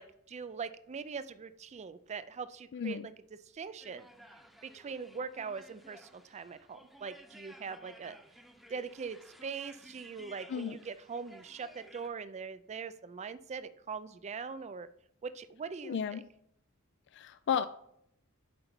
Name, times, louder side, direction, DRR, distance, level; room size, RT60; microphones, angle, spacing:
voice 1, 0.0-3.1 3.5-4.1 4.6-8.2 8.7-14.9 15.2-16.2, right 5 dB, 30° right, 13 dB, 0.4 m, -42 dB
voice 2, 2.7-3.1 10.5-10.8 15.8-16.2 17.1-17.6, left 7 dB, 55° left, 12 dB, 0.3 m, -33 dB
sound 1, 3.8-12.1, equal, ahead, 0.8 m, -56 dB
7.7 x 5.2 x 4.5 m, 0.72 s
head